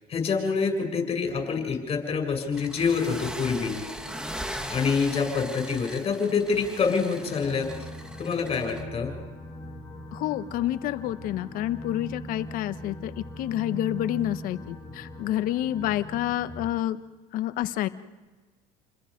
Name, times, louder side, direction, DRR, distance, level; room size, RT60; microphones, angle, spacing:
voice 1, 0.1-3.8 4.7-7.7 8.2-9.1, left 5 dB, 35° left, 4 dB, 7.2 m, -26 dB
sound 1, 2.5-8.8, equal, 5° right, 1.9 m, -39 dB
sound 2, 7.2-16.7, equal, 20° left, 7.3 m, -41 dB
voice 2, 10.1-17.0 17.3-17.9, left 13 dB, 60° left, 12 dB, 1.2 m, -29 dB
29.5 x 21.5 x 5.3 m, 1.3 s
supercardioid pair, 105°, 16 cm